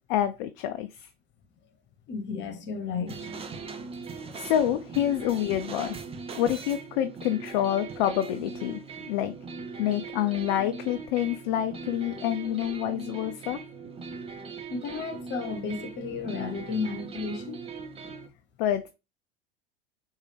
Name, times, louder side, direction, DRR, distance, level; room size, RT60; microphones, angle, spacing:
voice 1, 0.1-1.1 4.3-6.0 6.3-8.8 9.1-9.3 9.8-13.6 18.6-18.9, left 11 dB, 55° left, 0.5 m, -27 dB
voice 2, 2.1-3.9 14.7-17.6, left 5 dB, 40° left, 1.2 m, -33 dB
sound 1, 3.1-18.3, right 5 dB, 20° right, 0.7 m, -40 dB
4.7 x 2.7 x 3.3 m
hypercardioid pair, 80°, 30 cm